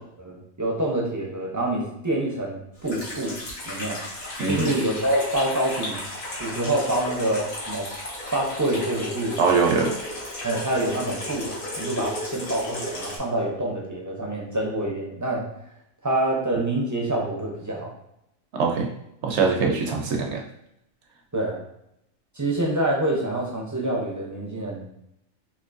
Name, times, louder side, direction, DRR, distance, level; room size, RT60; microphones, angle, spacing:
voice 1, 0.2-3.4 3.7-4.0 4.5-6.0 6.4-7.9 8.3-9.4 10.4-15.5 16.0-17.9 21.3-21.6 22.3-24.9, right 1 dB, 25° right, -3 dB, 0.4 m, -26 dB
Water tap faucet / Sink (filling or washing), 2.8-13.2, left 1 dB, 75° left, 1.5 m, -34 dB
voice 2, 4.4-4.7 9.4-9.9 18.5-18.9 19.2-20.4, right 4 dB, 65° right, 2 dB, 0.9 m, -22 dB
4.3 x 2.7 x 2.6 m, 0.79 s
omnidirectional pair, 1.4 m